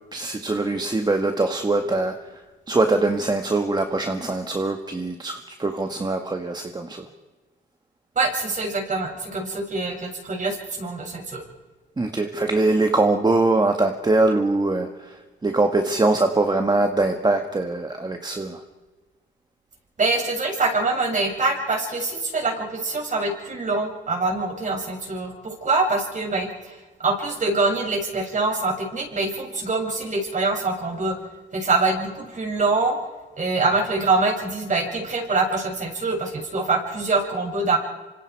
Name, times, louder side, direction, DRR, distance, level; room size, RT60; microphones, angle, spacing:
voice 1, 0.1-2.2 2.7-7.1 12.0-15.1 15.4-18.6, right 2 dB, 20° right, 5 dB, 1.8 m, -22 dB
voice 2, 8.2-11.4 20.0-31.2 31.5-33.0 33.4-37.8, right 3 dB, 40° right, 1 dB, 7.5 m, -24 dB
26.5 x 25.5 x 4.9 m, 1.3 s
cardioid pair, 90°, 20 cm